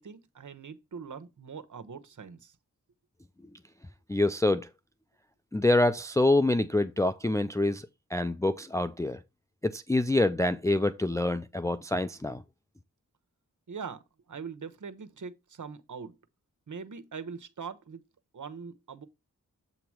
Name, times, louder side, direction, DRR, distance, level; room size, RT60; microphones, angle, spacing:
voice 1, 0.0-2.5 13.7-14.0 14.3-16.2 16.7-18.0 18.3-19.0, right 5 dB, 65° right, 1.1 m, -42 dB
voice 2, 4.1-4.7 5.5-9.2 9.6-12.4, left 2 dB, 10° left, 0.4 m, -26 dB
8.0 x 3.0 x 6.0 m
cardioid pair, 50°, 33 cm